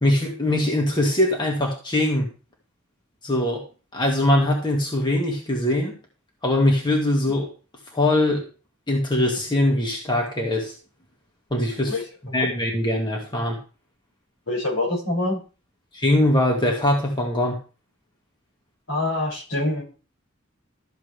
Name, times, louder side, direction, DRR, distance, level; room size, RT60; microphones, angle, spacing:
voice 1, 0.0-2.3 3.2-3.7 3.9-5.9 6.4-7.5 7.9-8.5 8.9-10.7 11.5-12.0 12.3-13.6 15.9-17.6, left 1 dB, 25° left, 0 dB, 2.1 m, -22 dB
voice 2, 14.5-15.4 18.9-19.8, left 2 dB, 80° left, -4 dB, 6.5 m, -25 dB
13.5 x 7.4 x 3.4 m, 0.33 s
head